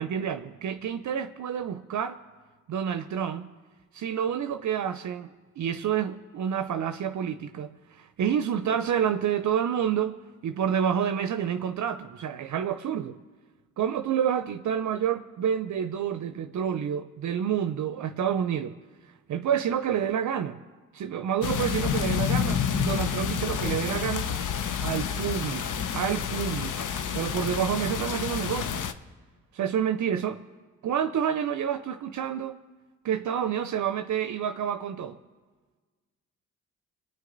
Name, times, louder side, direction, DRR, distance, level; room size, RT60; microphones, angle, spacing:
voice 1, 0.0-2.2 2.7-3.5 3.9-13.2 13.8-18.8 19.3-20.6 20.9-24.3 24.8-26.8 27.1-28.8 29.5-30.4 30.8-32.6 33.0-35.2, right 8 dB, 55° right, 9 dB, 0.6 m, -28 dB
sound 1, 21.4-28.9, left 8 dB, 60° left, 0.8 m, -29 dB
23.0 x 9.1 x 3.9 m, 1.4 s
supercardioid pair, 45°, 35 cm